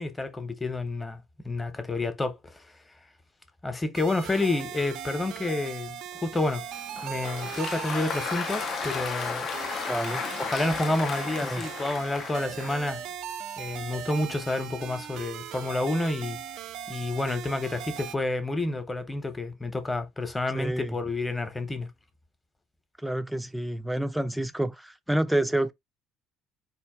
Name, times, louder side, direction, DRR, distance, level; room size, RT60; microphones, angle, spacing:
voice 1, 0.0-2.6 3.6-6.6 7.0-9.5 10.4-13.0 13.6-16.4 16.9-21.9, left 2 dB, 15° left, 1.0 m, -29 dB
sound 1, 3.9-18.2, right 9 dB, 55° right, 0.4 m, -39 dB
Applause, 6.7-12.9, left 6 dB, 45° left, 0.6 m, -34 dB
voice 2, 9.9-10.2 11.4-11.6 20.5-21.0 23.0-25.7, right 1 dB, 5° right, 0.5 m, -28 dB
4.5 x 2.5 x 3.5 m
figure-of-eight pair, 55°, 0 cm